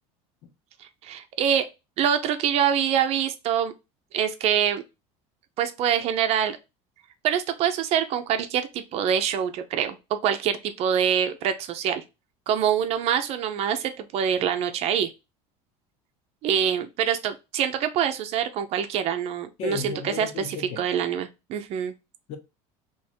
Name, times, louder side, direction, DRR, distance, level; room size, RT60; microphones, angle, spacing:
voice 1, 0.8-1.7 2.0-3.7 4.1-4.8 5.6-6.6 7.2-12.0 12.5-15.1 16.4-20.3 20.8-21.9, right 9 dB, 50° right, 0.7 m, -25 dB
voice 2, 19.6-20.9 22.3-22.4, left 6 dB, 55° left, 1.0 m, -34 dB
3.5 x 3.1 x 4.4 m
cardioid pair, 150°, 14 cm